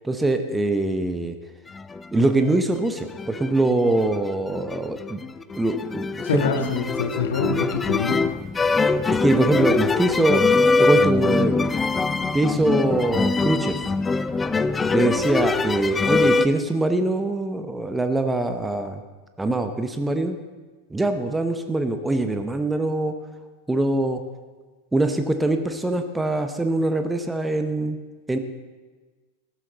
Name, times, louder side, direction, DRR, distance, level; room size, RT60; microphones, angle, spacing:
voice 1, 0.0-1.4 2.1-5.2 5.5-6.6 9.1-11.7 12.3-13.9 14.9-19.0 19.4-20.4 20.9-23.2 23.7-24.2 24.9-28.0 28.3-28.4, right 2 dB, 10° right, 8 dB, 0.8 m, -23 dB
sound 1, 1.8-2.6 2.9-16.5, left 4 dB, 15° left, 0.4 m, -23 dB
voice 2, 6.2-8.2, left 5 dB, 60° left, 6 dB, 1.4 m, -26 dB
14.5 x 12.5 x 4.0 m, 1.3 s
figure-of-eight pair, 90°, 0 cm